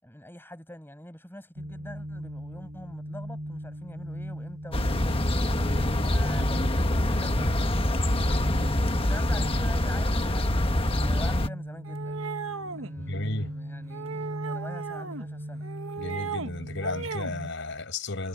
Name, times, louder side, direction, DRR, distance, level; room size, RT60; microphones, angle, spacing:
voice 1, 0.0-8.2 9.0-12.3 12.7-15.7, left 1 dB, 10° left, 6.7 m, -44 dB
sound 1, 1.6-17.5, equal, 40° right, 3.2 m, -38 dB
sound 2, 4.7-11.5, left 1 dB, 25° left, 1.3 m, -25 dB
sound 3, 11.8-12.9 13.9-15.3 15.6-16.5 16.8-17.3, right 5 dB, 75° right, 1.4 m, -36 dB
voice 2, 13.0-13.5 16.0-18.3, left 2 dB, 60° left, 5.7 m, -33 dB
head